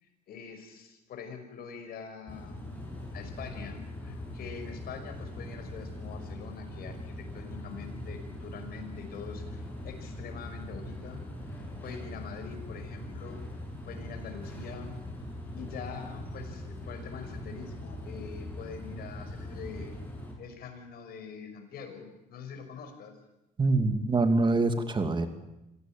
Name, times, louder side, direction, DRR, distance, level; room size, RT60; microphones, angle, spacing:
voice 1, 0.0-2.8 3.1-11.2 11.5-15.0 15.5-20.0 20.4-23.1, left 6 dB, 65° left, 6 dB, 5.6 m, -44 dB
sound 1, 2.3-20.3, left 1 dB, 10° left, 7.9 m, -41 dB
voice 2, 23.6-25.3, right 3 dB, 30° right, 8 dB, 2.7 m, -25 dB
26.0 x 16.5 x 9.1 m, 0.92 s
cardioid pair, 110°, 17 cm